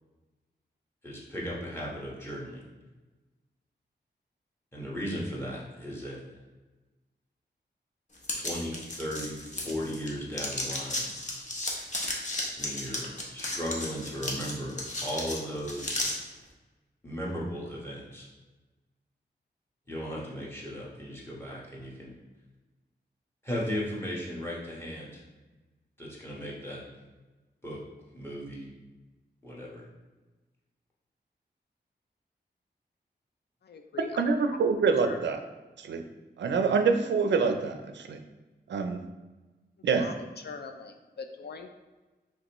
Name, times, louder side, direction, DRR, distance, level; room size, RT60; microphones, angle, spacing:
voice 1, 1.0-2.6 4.7-6.2 8.4-11.1 12.6-16.0 17.0-18.3 19.9-22.1 23.4-25.2 26.0-26.8 27.6-27.8 28.1-28.7 29.4-29.8, equal, 15° left, -4 dB, 1.2 m, -36 dB
sound 1, 8.2-10.1 10.3-16.1, left 1 dB, 40° left, 0.8 m, -34 dB
voice 2, 33.6-34.3 35.0-35.2 39.9-40.1 40.4-41.7, left 5 dB, 65° left, 6 dB, 0.4 m, -41 dB
voice 3, 34.2-35.4 35.8-36.0 36.4-38.2 38.7-39.0 39.8-40.1, right 5 dB, 85° right, 7 dB, 0.4 m, -26 dB
5.2 x 3.4 x 3.0 m, 1.2 s
wide cardioid pair, 145°, 18 cm